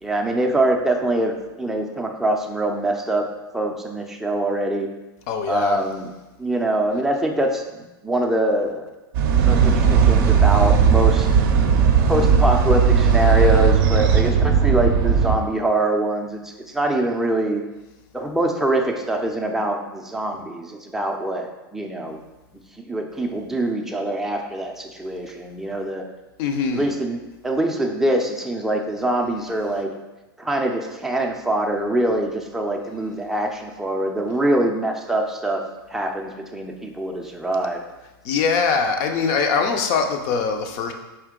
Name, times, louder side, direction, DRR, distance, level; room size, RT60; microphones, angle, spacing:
voice 1, 0.0-3.3 3.5-4.9 5.5-6.1 6.4-8.9 9.5-11.3 12.1-17.6 18.1-22.2 22.9-26.0 26.7-29.9 30.4-35.6 35.9-37.8, right 1 dB, 5° right, 2 dB, 0.5 m, -24 dB
voice 2, 5.3-5.8 26.4-26.9 38.2-40.9, left 5 dB, 45° left, 5 dB, 0.6 m, -22 dB
sound 1, 9.1-15.4, right 6 dB, 50° right, 0.5 m, -16 dB
4.4 x 2.8 x 3.7 m, 1.0 s
hypercardioid pair, 110°, 13 cm